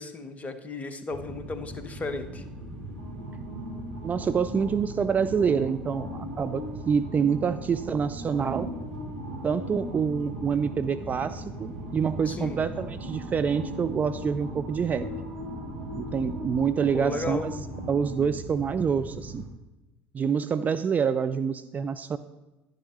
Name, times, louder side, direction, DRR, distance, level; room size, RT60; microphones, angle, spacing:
voice 1, 0.0-2.4 12.3-12.6 16.9-17.5, left 3 dB, 25° left, 9 dB, 1.1 m, -34 dB
sound 1, 1.1-19.5, right 1 dB, 75° right, 1.8 m, -37 dB
voice 2, 4.0-8.7 9.4-15.1 15.9-17.5 17.9-19.4 20.1-22.2, right 6 dB, 30° right, 10 dB, 0.5 m, -27 dB
11.0 x 10.5 x 3.3 m, 1.0 s
figure-of-eight pair, 65°, 6 cm